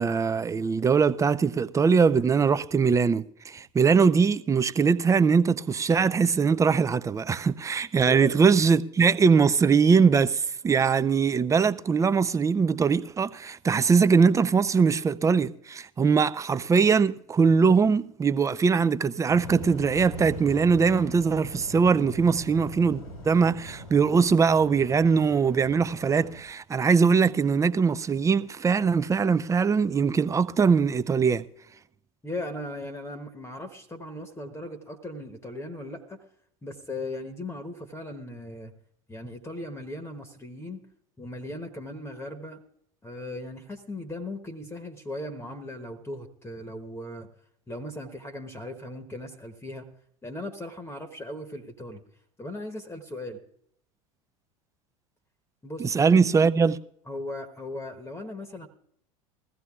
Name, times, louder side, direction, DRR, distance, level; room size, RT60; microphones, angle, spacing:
voice 1, 0.0-31.4 55.8-56.8, right 5 dB, 15° right, 0.4 m, -22 dB
Waves surf, 19.3-26.4, left 1 dB, 85° left, 2.1 m, -41 dB
voice 2, 32.2-36.2 36.6-38.7 39.1-40.8 41.2-42.6 43.0-47.3 47.7-49.9 50.2-52.0 52.4-53.4 55.6-55.9 57.1-58.7, left 1 dB, 15° left, 1.1 m, -38 dB
21.0 x 15.0 x 2.4 m
figure-of-eight pair, 75°, 18 cm